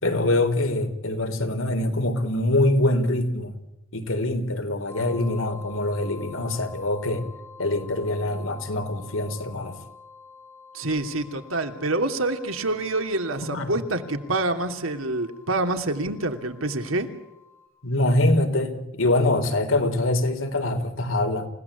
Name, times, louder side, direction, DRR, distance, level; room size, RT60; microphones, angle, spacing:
voice 1, 0.0-3.5 3.9-7.3 7.6-9.8 13.5-13.7 17.8-21.5, left 1 dB, 85° left, 7 dB, 4.0 m, -24 dB
sound 1, 4.9-17.7, left 4 dB, 15° left, 6.8 m, -48 dB
voice 2, 10.7-17.1, right 2 dB, 85° right, 6 dB, 2.9 m, -27 dB
29.0 x 18.0 x 8.4 m, 0.90 s
head